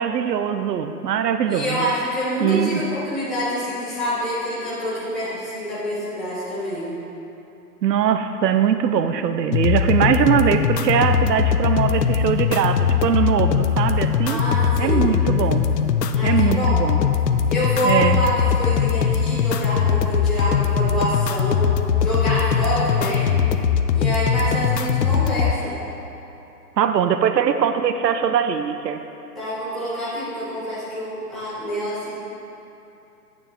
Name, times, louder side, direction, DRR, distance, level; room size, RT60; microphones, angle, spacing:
voice 1, 0.0-1.9 2.4-2.8 7.8-14.4 14.8-15.7 16.2-17.0 17.8-18.2 26.8-29.0, right 8 dB, 80° right, 9 dB, 0.7 m, -21 dB
voice 2, 1.5-6.9 14.2-15.1 16.1-16.9 17.5-21.7 22.0-23.3 23.9-25.7 29.3-32.1, equal, ahead, -14 dB, 1.1 m, -26 dB
sound 1, 9.5-25.5, left 7 dB, 80° left, 0.7 m, -20 dB
9.3 x 9.3 x 3.3 m, 2.8 s
hypercardioid pair, 165°, 49 cm